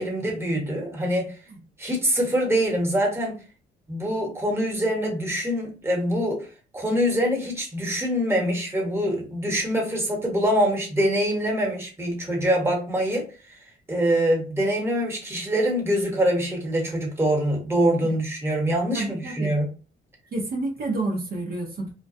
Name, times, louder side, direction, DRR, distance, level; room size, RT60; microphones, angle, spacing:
voice 1, 0.0-1.3 1.8-3.3 3.9-6.5 6.7-13.6 13.9-19.7, equal, 10° right, 1.1 m, -24 dB
voice 2, 18.9-19.5 20.3-21.9, right 2 dB, 50° right, 0.7 m, -29 dB
2.3 x 2.2 x 2.5 m
cardioid pair, 90°, 20 cm